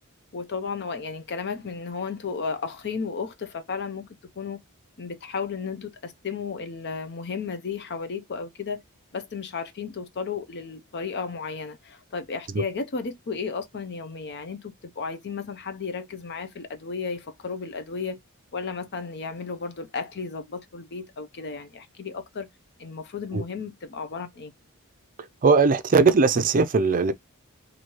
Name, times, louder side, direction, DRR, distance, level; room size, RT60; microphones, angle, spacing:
voice 1, 0.3-4.6 5.0-8.8 9.1-18.2 18.5-22.5 22.8-24.5, left 5 dB, 55° left, 0.6 m, -34 dB
voice 2, 25.4-27.1, right 4 dB, 40° right, 0.5 m, -19 dB
3.1 x 2.7 x 4.4 m
head